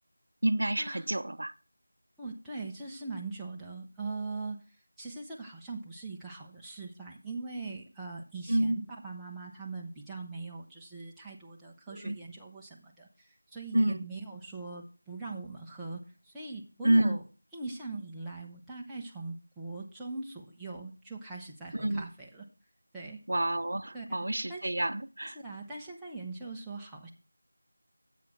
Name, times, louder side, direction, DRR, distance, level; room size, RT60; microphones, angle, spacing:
voice 1, 0.4-1.5 8.5-8.8 11.9-12.2 13.7-14.0 16.8-17.2 21.7-22.0 23.3-25.4, right 1 dB, 65° right, 0.6 m, -28 dB
voice 2, 2.2-4.6 5.0-17.2 17.5-22.4 22.9-23.2 23.9-24.1 24.5-24.6 25.3-27.1, right 3 dB, 5° right, 0.8 m, -41 dB
7.6 x 6.7 x 6.0 m
figure-of-eight pair, 175°, 0 cm